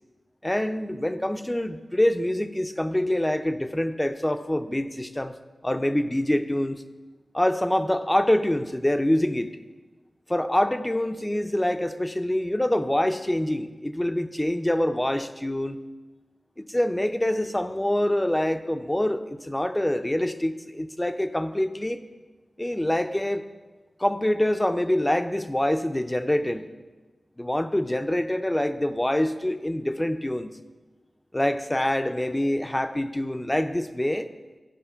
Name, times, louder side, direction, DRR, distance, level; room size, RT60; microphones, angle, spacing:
voice 1, 0.4-5.3 5.6-6.8 7.3-9.6 10.3-15.8 16.6-22.0 22.6-23.4 24.0-26.7 27.4-30.6 31.3-34.3, left 1 dB, 15° left, 9 dB, 0.6 m, -25 dB
12.0 x 4.9 x 5.6 m, 1.3 s
cardioid pair, 45°, 0 cm